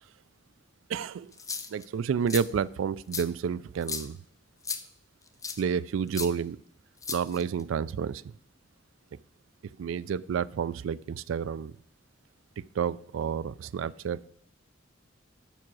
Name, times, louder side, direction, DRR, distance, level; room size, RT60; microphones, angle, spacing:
voice 1, 0.9-1.3 1.7-4.2 5.6-6.6 7.1-8.3 9.8-11.7 12.7-14.2, right 7 dB, 90° right, 20 dB, 0.3 m, -30 dB
sound 1, 1.3-1.8 2.3-2.4 3.1-3.2 3.8-4.1 4.6-4.8 5.4-5.6 6.1-6.3 7.0-7.6, left 5 dB, 15° left, 0.6 m, -35 dB
7.2 x 6.2 x 6.1 m, 0.66 s
head